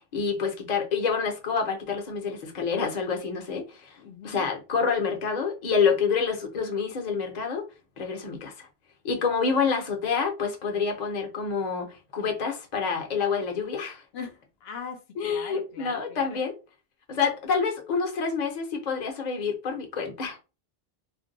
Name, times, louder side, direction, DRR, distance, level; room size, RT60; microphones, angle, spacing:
voice 1, 0.0-4.0 4.2-7.6 8.0-8.7 9.0-14.0 15.2-16.5 17.1-20.4, left 5 dB, 50° left, 0.8 m, -27 dB
voice 2, 4.0-4.5 14.1-16.4, left 6 dB, 80° left, 0.8 m, -41 dB
2.5 x 2.2 x 3.8 m
omnidirectional pair, 1.0 m